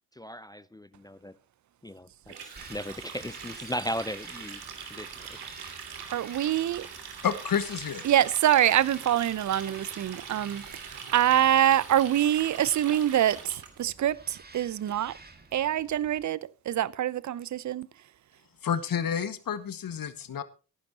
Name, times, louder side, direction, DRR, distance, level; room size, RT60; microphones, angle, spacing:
voice 1, 0.1-1.3 1.8-5.4, equal, 10° left, 0.5 m, -37 dB
Water tap faucet, 2.3-13.8, right 6 dB, 55° right, 3.0 m, -43 dB
Bird vocalization bird call bird song, 2.6-16.3, right 3 dB, 20° right, 2.2 m, -52 dB
voice 2, 6.1-6.9 8.0-15.2 15.5-17.9, right 11 dB, 40° right, 0.7 m, -25 dB
voice 3, 7.2-8.1 18.6-20.4, left 7 dB, 45° left, 1.7 m, -30 dB
17.5 x 11.5 x 2.9 m
hypercardioid pair, 45°, 47 cm